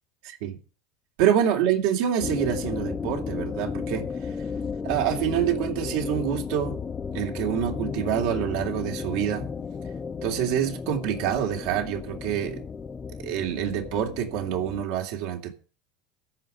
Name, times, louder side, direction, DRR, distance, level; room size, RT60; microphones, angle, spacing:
voice 1, 0.2-0.6 1.2-4.0 4.8-6.8 7.1-9.5 10.2-12.6 13.2-15.5, right 9 dB, 70° right, 2.9 m, -26 dB
sound 1, 2.2-14.8, left 5 dB, 30° left, 0.9 m, -34 dB
13.5 x 5.3 x 9.3 m
hypercardioid pair, 80°, 0 cm